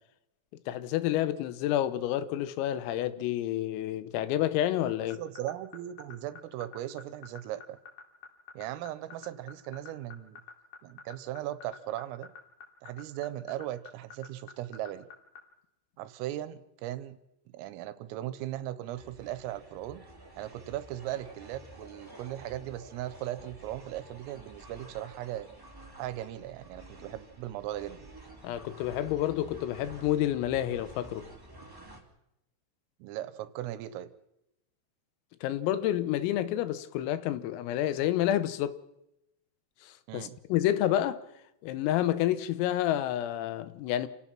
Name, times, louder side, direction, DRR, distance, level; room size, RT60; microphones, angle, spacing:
voice 1, 0.7-5.2 28.4-31.3 35.4-38.8 39.8-41.2 41.6-44.1, left 12 dB, 85° left, 3.7 m, -29 dB
sound 1, 4.9-15.4, left 7 dB, 55° left, 4.3 m, -46 dB
voice 2, 5.0-7.8 8.6-10.4 10.8-12.3 12.8-15.1 16.0-17.2 17.5-20.0 20.4-25.5 26.0-28.0 33.0-34.1 40.1-40.4, right 13 dB, 80° right, 3.6 m, -38 dB
sound 2, 18.9-32.0, right 1 dB, 5° right, 1.7 m, -51 dB
28.5 x 17.0 x 6.0 m
omnidirectional pair, 6.0 m